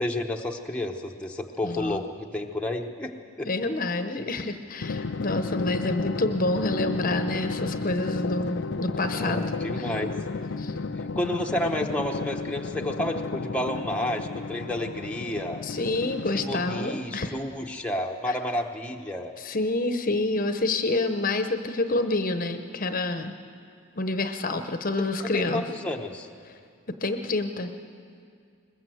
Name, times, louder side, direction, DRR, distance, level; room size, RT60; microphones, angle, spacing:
voice 1, 0.0-3.5 9.1-10.1 11.0-15.6 16.3-19.3 25.3-26.3, left 1 dB, 5° left, 1 dB, 0.9 m, -31 dB
voice 2, 1.6-2.0 3.4-9.5 9.8-9.9 10.6-10.7 15.6-17.3 18.3-18.4 19.4-23.3 24.0-25.6 27.0-27.7, left 2 dB, 40° left, 8 dB, 0.9 m, -28 dB
Drum, 4.8-17.2, left 3 dB, 55° left, 0.5 m, -33 dB
21.5 x 20.5 x 7.8 m, 2.2 s
head